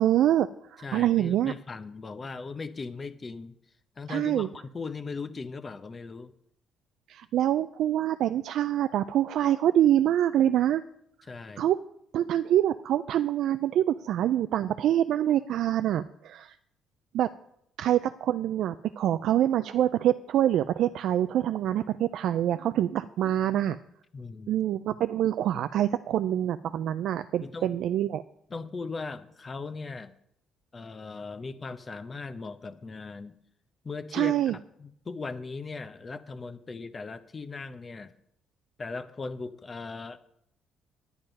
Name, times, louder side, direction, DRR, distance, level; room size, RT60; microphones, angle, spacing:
voice 1, 0.0-1.5 4.1-4.5 7.1-10.8 11.6-11.8 12.1-16.6 17.1-17.3 17.8-23.8 24.5-28.2 34.1-34.6, right 11 dB, 70° right, 11 dB, 0.3 m, -25 dB
voice 2, 0.8-3.5 4.0-6.3 11.3-11.7 24.1-24.5 27.4-27.7 28.5-30.1 30.7-33.3 33.8-38.1 38.8-40.2, left 4 dB, 35° left, 11 dB, 0.8 m, -38 dB
9.7 x 9.2 x 5.3 m, 0.74 s
supercardioid pair, 75°, 0 cm